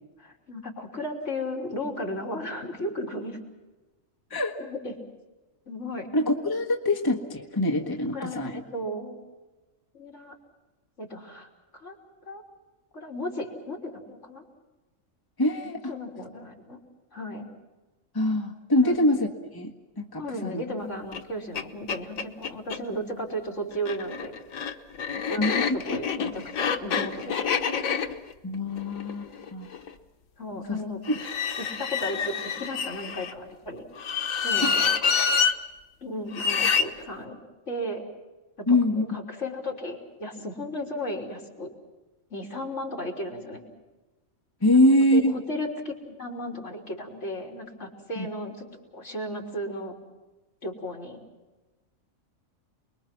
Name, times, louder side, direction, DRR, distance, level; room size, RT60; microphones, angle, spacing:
voice 1, 0.2-3.4 4.6-4.9 5.7-6.1 8.1-9.2 9.9-10.4 11.0-11.5 11.7-12.0 12.2-12.4 12.9-14.4 15.6-16.8 17.1-17.5 18.8-19.0 20.2-24.3 25.3-27.5 27.8-28.1 28.8-28.9 30.4-31.0 31.6-33.9 34.4-34.9 36.0-37.4 37.7-38.0 38.6-41.7 42.3-43.6 45.1-48.7 48.9-49.9 50.6-51.2, equal, 60° left, 0 dB, 3.9 m, -35 dB
voice 2, 6.1-8.6 15.4-15.9 18.1-19.3 19.5-20.6 25.4-25.6 28.4-29.3 29.5-29.7 30.7-30.8 34.6-34.7 38.7-39.0 44.6-45.3 48.2-48.3, left 1 dB, 15° left, 0 dB, 1.6 m, -24 dB
sound 1, 21.1-21.2 21.6-21.7 21.9-22.8 23.7-29.9 31.1-33.3 34.0-35.6 36.3-36.9, left 6 dB, 85° left, 1.5 m, -27 dB
29.0 x 22.0 x 6.0 m, 1.2 s
omnidirectional pair, 1.4 m